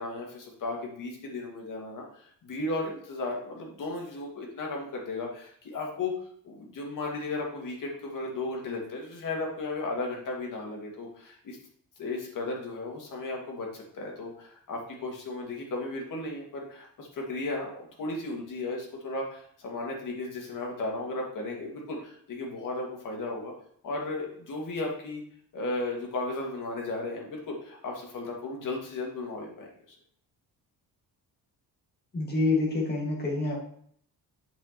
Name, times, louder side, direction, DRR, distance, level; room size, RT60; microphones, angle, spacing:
voice 1, 0.0-6.1 6.4-11.6 12.0-23.5 23.8-25.2 25.5-30.0, left 2 dB, 60° left, -1 dB, 2.1 m, -35 dB
voice 2, 32.1-33.6, left 3 dB, 25° left, -1 dB, 2.0 m, -27 dB
8.3 x 6.2 x 3.0 m, 0.62 s
cardioid pair, 165°, 37 cm